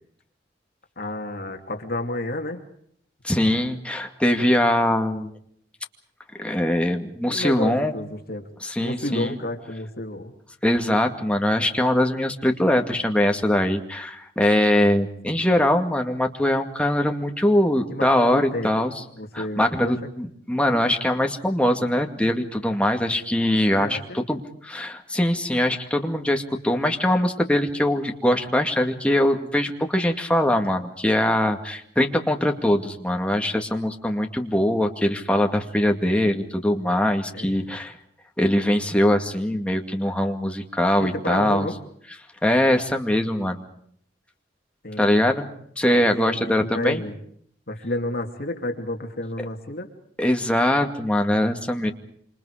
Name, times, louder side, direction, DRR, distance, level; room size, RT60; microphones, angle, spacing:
voice 1, 1.0-2.6 7.3-8.5 8.8-10.3 15.2-15.5 17.9-18.7 19.2-19.9 23.8-24.2 37.3-37.5 41.0-41.8 44.8-45.2 45.9-47.2 47.7-49.9, left 1 dB, 60° left, 4 dB, 2.9 m, -31 dB
voice 2, 3.2-5.3 6.4-8.0 8.6-9.4 10.6-19.0 19.3-38.0 38.4-41.7 42.4-43.6 45.0-45.5 45.8-47.0 50.2-51.9, left 1 dB, 5° left, 4 dB, 2.2 m, -22 dB
27.0 x 27.0 x 5.0 m, 0.66 s
head